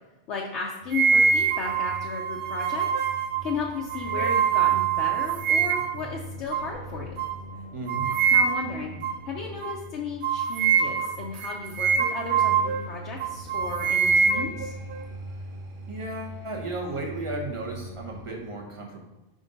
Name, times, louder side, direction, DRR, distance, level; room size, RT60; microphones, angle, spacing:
voice 1, 0.3-2.9 3.4-7.2 8.3-8.9 9.3-14.7, left 4 dB, 70° left, -2 dB, 1.0 m, -34 dB
sound 1, 0.8-18.4, right 1 dB, 90° right, 1.2 m, -42 dB
sound 2, 0.9-6.0 6.5-6.7 7.2-7.4 7.9-8.8 9.0-9.2 9.6-9.8 10.2-12.9 13.2-15.0, right 6 dB, 55° right, 0.6 m, -24 dB
voice 2, 7.7-8.1 15.3-15.5 15.9-19.0, right 2 dB, 25° right, 0 dB, 1.1 m, -34 dB
5.2 x 3.9 x 5.2 m, 1.0 s
omnidirectional pair, 1.3 m